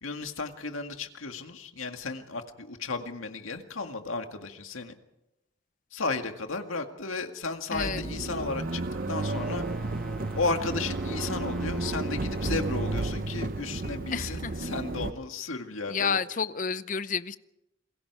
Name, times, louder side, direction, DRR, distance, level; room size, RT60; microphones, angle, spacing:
voice 1, 0.0-4.9 5.9-8.8 9.1-9.6 10.4-16.2, left 3 dB, 90° left, 5 dB, 2.0 m, -34 dB
voice 2, 7.7-8.0 14.1-14.5 15.9-17.4, left 6 dB, 40° left, 14 dB, 0.7 m, -30 dB
sound 1, 7.7-15.1, right 2 dB, 45° right, 0.8 m, -32 dB
Screaming, 8.3-12.1, right 4 dB, 90° right, 2.3 m, -49 dB
Brass instrument, 9.1-13.2, equal, ahead, 1.3 m, -49 dB
28.5 x 21.5 x 4.8 m, 0.88 s
head